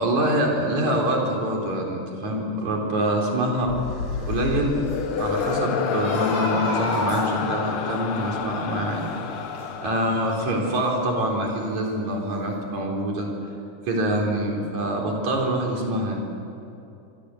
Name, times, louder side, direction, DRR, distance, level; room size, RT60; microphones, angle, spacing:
voice 1, 0.0-3.8 4.2-4.8 5.2-13.3 13.9-16.2, right 1 dB, 60° right, 0 dB, 5.4 m, -25 dB
sound 1, 3.6-11.0, left 7 dB, 60° left, 1.5 m, -29 dB
sound 2, 4.1-11.0 11.4-12.2 12.5-12.6, right 1 dB, 80° right, 9.4 m, -37 dB
25.0 x 24.5 x 7.9 m, 2.7 s
omnidirectional pair, 3.8 m